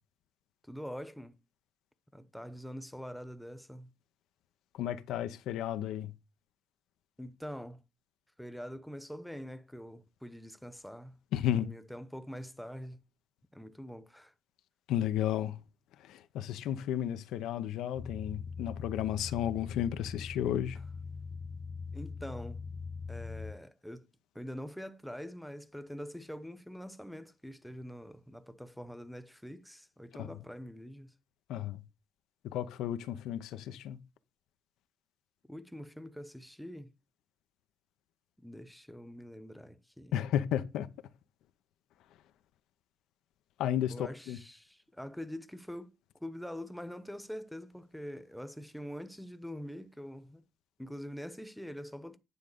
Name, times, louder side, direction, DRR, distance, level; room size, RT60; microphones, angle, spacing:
voice 1, 0.7-1.4 2.1-3.9 7.2-7.8 8.4-11.2 11.5-13.0 13.5-14.3 21.9-22.6 23.1-24.1 24.3-31.1 35.5-36.9 38.4-40.1 43.9-50.4 50.8-52.2, equal, ahead, 0.9 m, -44 dB
voice 2, 4.7-6.1 11.3-11.7 14.9-15.6 16.0-20.8 30.1-30.3 31.5-31.8 32.4-34.0 40.1-40.9 43.6-44.4, left 11 dB, 90° left, 0.7 m, -33 dB
sound 1, 17.9-23.5, left 4 dB, 30° left, 0.9 m, -42 dB
9.8 x 3.7 x 6.7 m
cardioid pair, 90°, 0 cm